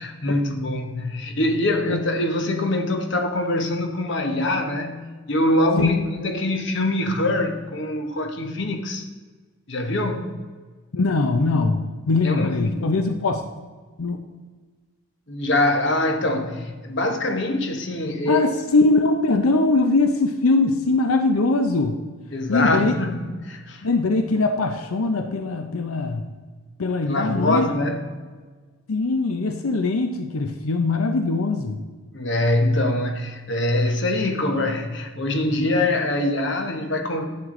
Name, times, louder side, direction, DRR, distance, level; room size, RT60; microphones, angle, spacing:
voice 1, 0.0-9.1 9.7-10.3 12.2-12.8 15.3-18.4 22.3-23.9 27.1-28.0 32.1-37.3, left 1 dB, 55° left, 1.1 m, -24 dB
voice 2, 10.9-13.4 14.0-14.2 18.3-22.0 22.5-22.9 23.8-26.3 26.8-27.7 28.9-31.8, left 3 dB, 90° left, 0.7 m, -21 dB
11.0 x 7.8 x 3.8 m
head